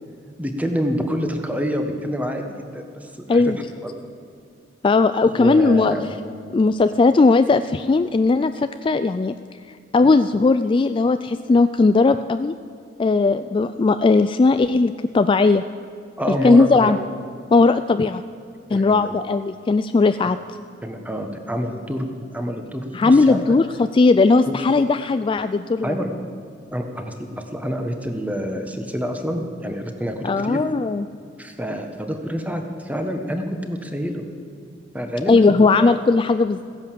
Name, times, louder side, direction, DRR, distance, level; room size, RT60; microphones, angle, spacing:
voice 1, 0.4-3.4 3.8-4.0 5.2-6.0 16.2-17.0 18.7-19.1 20.8-23.4 24.5-24.6 25.8-26.1 26.7-30.6 31.4-34.2 34.9-35.9, equal, 10° right, 5 dB, 1.3 m, -27 dB
voice 2, 4.8-5.9 6.5-9.3 9.9-12.5 13.0-15.6 16.3-17.0 17.5-18.2 18.7-20.4 22.9-26.0 30.2-31.1 35.3-36.6, left 3 dB, 25° left, 11 dB, 0.3 m, -17 dB
15.5 x 10.5 x 7.6 m, 2.4 s
head